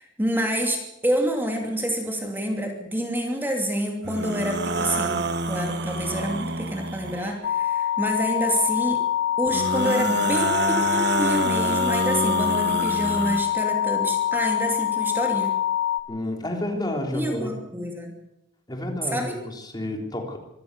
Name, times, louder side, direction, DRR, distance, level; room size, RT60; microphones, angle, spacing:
voice 1, 0.0-9.1 9.4-15.6 17.1-18.1 19.0-19.4, equal, 10° right, 2 dB, 2.8 m, -28 dB
sound 1, 4.0-7.4 9.5-13.4, right 2 dB, 60° right, 1.5 m, -27 dB
sound 2, 7.4-16.0, left 11 dB, 75° left, 2.4 m, -25 dB
voice 2, 16.1-17.5 18.7-20.4, left 1 dB, 20° left, 2 dB, 3.6 m, -30 dB
25.0 x 14.5 x 8.2 m, 0.86 s
head